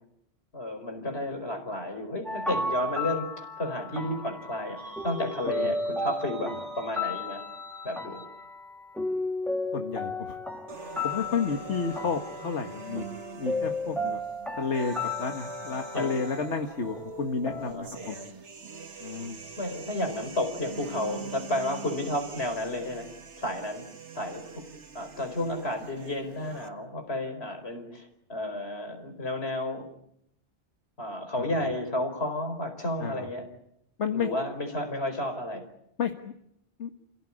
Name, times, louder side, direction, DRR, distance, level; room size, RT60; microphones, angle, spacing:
voice 1, 0.5-7.4 7.8-8.2 15.7-16.2 17.6-18.4 19.6-23.8 24.1-24.6 24.9-29.9 31.0-33.5 34.1-35.6, left 1 dB, 65° left, 6 dB, 4.9 m, -32 dB
sound 1, 2.2-17.7, left 2 dB, ahead, 2.0 m, -34 dB
sound 2, 4.8-8.5, right 1 dB, 30° right, 2.1 m, -47 dB
voice 2, 9.7-10.4 11.0-13.1 13.4-14.2 14.6-18.2 19.0-19.4 31.4-31.5 33.0-33.3 34.0-34.3 36.0-36.3 36.8-36.9, left 5 dB, 85° left, 6 dB, 1.8 m, -31 dB
sound 3, 10.7-26.7, right 4 dB, 85° right, 2.0 m, -43 dB
29.0 x 16.5 x 9.9 m, 0.76 s
omnidirectional pair, 1.1 m